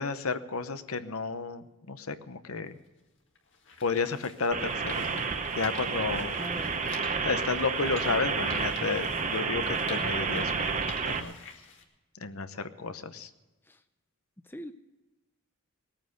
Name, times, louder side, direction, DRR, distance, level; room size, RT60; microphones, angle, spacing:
voice 1, 0.0-2.8 3.8-5.3 5.6-6.3 7.2-10.7 11.1-11.4 12.2-13.3, left 4 dB, 75° left, 11 dB, 0.9 m, -32 dB
sound 1, 2.7-2.8 3.4-11.8, left 5 dB, 55° left, 2.1 m, -48 dB
sound 2, 4.5-11.2, right 5 dB, 35° right, 0.9 m, -30 dB
voice 2, 6.2-6.7 13.6-13.8 14.4-14.7, left 1 dB, 10° left, 10 dB, 0.5 m, -41 dB
19.5 x 9.0 x 6.5 m, 1.1 s
head